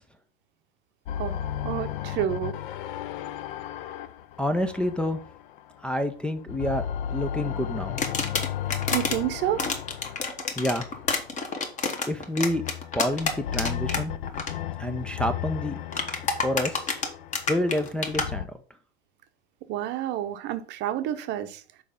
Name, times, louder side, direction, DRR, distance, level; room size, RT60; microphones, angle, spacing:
sound 1, 1.1-6.0 6.4-11.7 12.4-18.5, left 10 dB, 50° left, 0.6 m, -35 dB
voice 1, 1.6-2.5 8.9-9.7 19.7-21.6, right 12 dB, 35° right, 0.8 m, -29 dB
voice 2, 4.4-5.2 5.8-6.8 7.1-8.0 10.6-10.9 12.1-12.6 12.9-14.1 14.8-15.8 16.4-16.9 17.5-18.5, left 1 dB, 5° left, 0.4 m, -28 dB
sound 2, 8.0-9.2 9.6-14.0 14.3-14.5 15.9-18.3, left 4 dB, 20° left, 1.3 m, -28 dB
6.5 x 4.8 x 5.1 m
hypercardioid pair, 100°, 33 cm